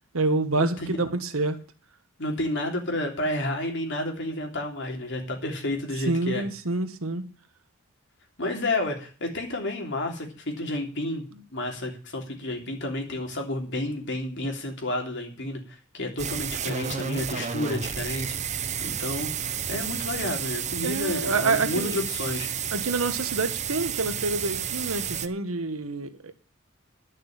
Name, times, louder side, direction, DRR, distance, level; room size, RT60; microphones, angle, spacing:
voice 1, 0.1-1.6 6.1-7.3 20.8-22.0 22.7-26.3, right 3 dB, 85° right, 1.5 m, -27 dB
voice 2, 2.2-6.4 8.4-11.2 11.5-18.3 18.8-19.3 19.7-22.5, left 1 dB, 60° left, 3.3 m, -30 dB
sound 1, 16.2-25.3, right 8 dB, 35° right, 0.7 m, -31 dB
11.0 x 6.5 x 9.0 m
head